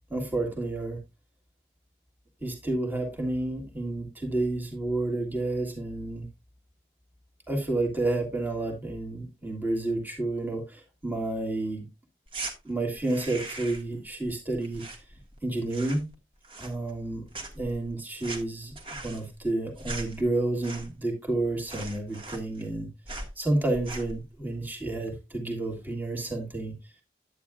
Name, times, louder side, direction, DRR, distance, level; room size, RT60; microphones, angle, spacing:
voice 1, 0.1-1.0 2.4-6.3 7.5-11.9 12.6-15.0 15.4-16.1 16.6-17.2 17.6-26.8, right 2 dB, 10° right, 2 dB, 1.8 m, -30 dB
sound 1, 12.3-12.5 13.0-13.9 14.2-15.4 15.6-16.1 16.4-17.1 17.3-21.1 21.4-21.5 21.7-22.8 23.1-23.3 23.7-24.2, right 2 dB, 30° right, 1.6 m, -39 dB
9.8 x 9.2 x 2.3 m, 0.23 s
head